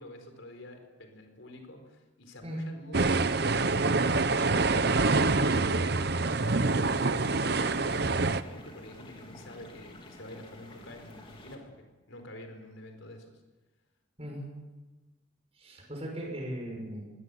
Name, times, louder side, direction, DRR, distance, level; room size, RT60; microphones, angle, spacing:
voice 1, 0.0-5.0 5.3-6.4 6.9-13.3, left 1 dB, 85° left, 5 dB, 4.5 m, -47 dB
sound 1, 2.9-8.4, right 3 dB, 55° right, 0.9 m, -26 dB
sound 2, 6.2-11.6, left 1 dB, 25° left, 3.4 m, -50 dB
voice 2, 14.2-14.5 15.6-17.1, equal, 30° right, 0 dB, 6.1 m, -38 dB
23.5 x 17.5 x 8.3 m, 1.1 s
head